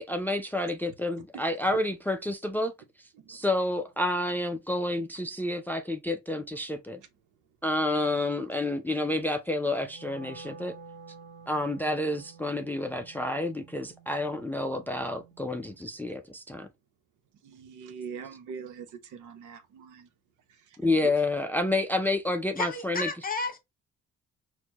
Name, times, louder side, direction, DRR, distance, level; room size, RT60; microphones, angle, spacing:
voice 1, 0.0-2.7 3.3-7.0 7.6-10.7 11.5-16.7 20.8-23.1, left 2 dB, 5° left, 0.4 m, -29 dB
Wind instrument woodwind instrument, 9.7-16.0, right 4 dB, 35° right, 1.5 m, -50 dB
voice 2, 17.4-20.1, right 6 dB, 85° right, 0.9 m, -42 dB
voice 3, 22.6-23.6, left 3 dB, 30° left, 1.0 m, -31 dB
4.4 x 2.3 x 2.8 m
cardioid pair, 90°, 30 cm